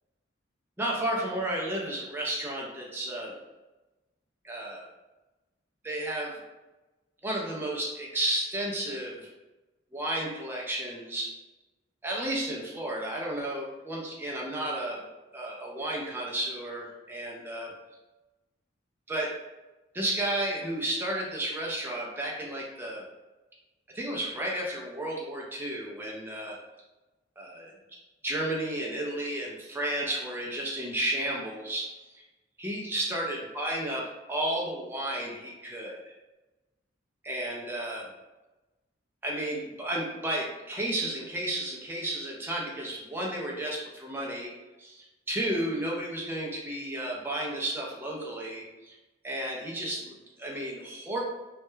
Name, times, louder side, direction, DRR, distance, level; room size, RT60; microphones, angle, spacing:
voice 1, 0.8-3.4 4.4-4.8 5.8-6.4 7.2-9.3 9.9-11.3 12.0-15.0 15.3-17.7 19.1-19.3 19.9-23.0 23.9-26.6 27.4-27.7 28.2-31.9 32.1-32.2 32.6-36.1 37.2-38.1 39.2-44.5 44.8-49.0 49.2-51.2, right 1 dB, 10° right, -3 dB, 0.3 m, -32 dB
2.2 x 2.0 x 3.0 m, 1.1 s
head